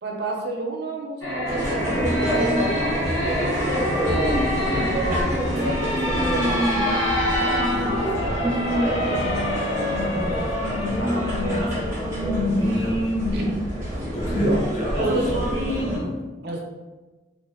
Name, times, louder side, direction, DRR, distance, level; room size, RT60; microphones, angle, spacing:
voice 1, 0.0-4.4 5.6-6.9 8.1-10.3 10.7-11.9 13.3-13.6 14.3-14.6 14.9-15.4 16.4-16.6, right 2 dB, 55° right, -1 dB, 0.5 m, -30 dB
sound 1, 1.2-11.7, left 1 dB, 90° left, 0.7 m, -27 dB
sound 2, 1.5-16.0, equal, 15° right, 0.9 m, -25 dB
voice 2, 7.7-8.1 12.7-13.1 14.1-15.3 15.7-16.4, left 1 dB, 35° left, -2 dB, 0.5 m, -33 dB
2.5 x 2.2 x 3.4 m, 1.2 s
head